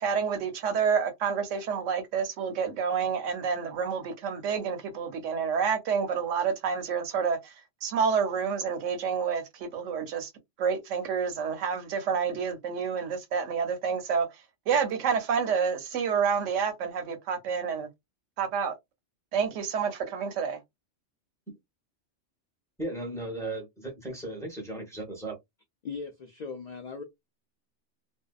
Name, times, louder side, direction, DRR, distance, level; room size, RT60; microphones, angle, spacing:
voice 1, 0.0-7.6 7.8-10.3 10.6-14.3 14.7-17.9 18.4-18.7 19.3-20.6, right 6 dB, 80° right, 1.0 m, -28 dB
voice 2, 22.8-25.4, right 2 dB, 5° left, 0.7 m, -36 dB
voice 3, 25.8-27.0, left 5 dB, 85° left, 0.3 m, -38 dB
2.6 x 2.1 x 2.3 m
omnidirectional pair, 1.3 m